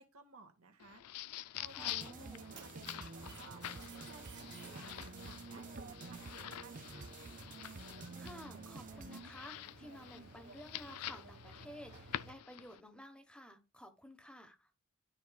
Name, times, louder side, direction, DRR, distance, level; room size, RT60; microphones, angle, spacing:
voice 1, 0.0-7.2, right 3 dB, 70° right, 1.6 m, -58 dB
sound 1, 0.8-12.8, left 12 dB, 85° left, 0.4 m, -48 dB
Mechanisms, 1.6-12.3, right 2 dB, 55° right, 1.3 m, -55 dB
voice 2, 1.7-2.4 8.2-14.7, equal, 5° left, 1.1 m, -53 dB
sound 2, 1.8-9.2, right 4 dB, 35° right, 0.5 m, -50 dB
12.0 x 4.6 x 2.3 m
head